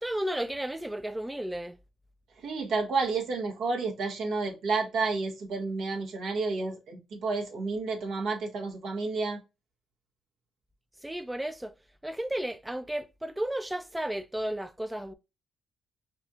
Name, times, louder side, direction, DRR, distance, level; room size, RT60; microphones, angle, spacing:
voice 1, 0.0-1.8 11.0-11.7 12.0-15.1, right 1 dB, 5° right, 0.4 m, -33 dB
voice 2, 2.4-9.4, right 4 dB, 70° right, 1.3 m, -30 dB
4.2 x 2.4 x 2.8 m
cardioid pair, 90°, 0 cm